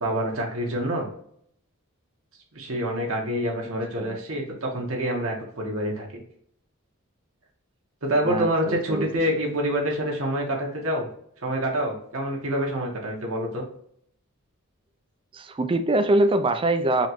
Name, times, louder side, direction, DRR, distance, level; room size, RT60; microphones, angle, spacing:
voice 1, 0.0-1.1 2.5-6.2 8.0-11.1 11.4-13.6, equal, 70° right, -1 dB, 1.2 m, -27 dB
voice 2, 3.7-4.2 8.2-9.1 15.3-17.1, right 2 dB, 25° right, 9 dB, 0.4 m, -24 dB
4.1 x 3.0 x 2.9 m, 0.67 s
head